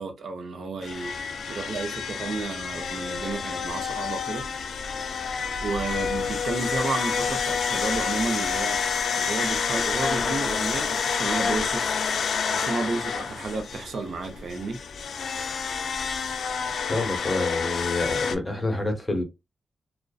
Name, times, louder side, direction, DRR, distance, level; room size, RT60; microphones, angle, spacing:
voice 1, 0.0-5.3 5.6-8.8 9.2-12.0 12.5-14.8, right 3 dB, 65° right, 0.6 m, -32 dB
sound 1, 0.8-18.4, left 6 dB, 70° left, 0.3 m, -28 dB
voice 2, 16.9-19.2, left 2 dB, 15° left, 0.8 m, -27 dB
2.6 x 2.1 x 2.3 m
wide cardioid pair, 140°, 0 cm